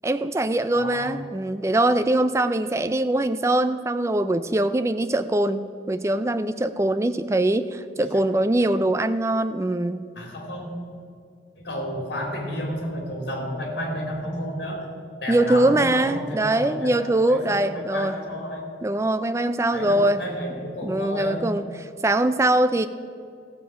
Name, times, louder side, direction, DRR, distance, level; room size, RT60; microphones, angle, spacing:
voice 1, 0.0-10.0 15.3-18.2 18.8-20.2 20.8-21.6 22.0-22.9, right 1 dB, 15° right, 11 dB, 0.3 m, -22 dB
voice 2, 0.7-1.1 7.9-8.7 10.1-10.7 11.6-14.9 15.2-18.6 19.7-21.4, equal, 60° left, 0 dB, 2.8 m, -32 dB
15.0 x 7.4 x 5.9 m, 2.4 s
head